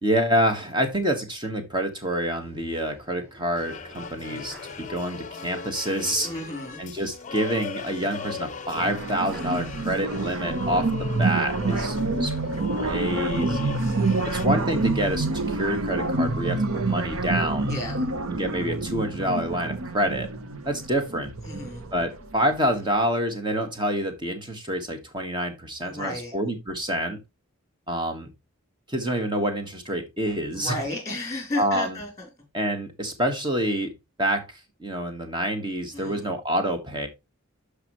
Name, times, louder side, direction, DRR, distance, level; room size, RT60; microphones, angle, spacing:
voice 1, 0.0-6.3 6.8-12.3 12.7-13.8 14.2-17.7 18.3-20.3 20.6-21.3 21.9-27.2 27.9-28.3 28.9-30.8 31.6-32.0 32.5-33.9 34.2-34.5 34.8-37.1, equal, 20° right, 1.5 m, -27 dB
sound 1, 2.4-5.5 5.8-5.9 7.7-10.4 10.9-11.8, equal, 50° right, 4.0 m, -49 dB
sound 2, 3.6-14.5, left 5 dB, 35° left, 0.6 m, -38 dB
voice 2, 6.2-6.8 11.6-11.9 13.8-14.4 17.7-18.1 21.4-21.9 25.8-26.3 30.5-32.3 35.9-36.3, left 2 dB, 15° left, 3.7 m, -34 dB
sound 3, 8.7-22.5, right 3 dB, 85° right, 0.9 m, -27 dB
12.0 x 5.0 x 3.1 m
head